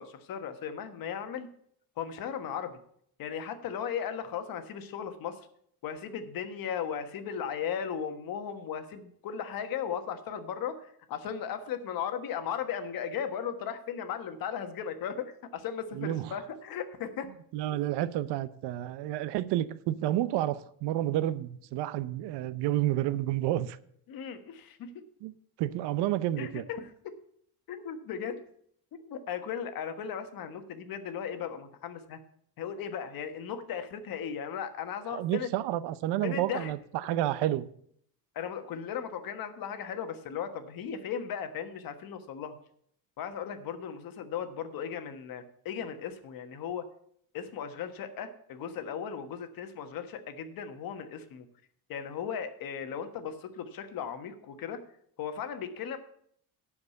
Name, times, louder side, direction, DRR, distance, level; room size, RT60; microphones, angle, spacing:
voice 1, 0.0-1.5 2.0-2.8 3.2-5.4 5.8-17.3 24.1-24.9 26.4-27.1 27.7-28.4 28.9-32.2 32.6-35.5 36.2-36.7 38.3-42.6 43.2-46.8 47.3-51.4 51.9-54.8 55.2-56.0, left 8 dB, 60° left, 1.4 m, -36 dB
voice 2, 15.9-16.4 17.5-23.8 25.2-25.3 25.6-26.6 35.1-37.7, right 13 dB, 90° right, 0.7 m, -30 dB
11.5 x 4.9 x 8.2 m
cardioid pair, 140°, 40 cm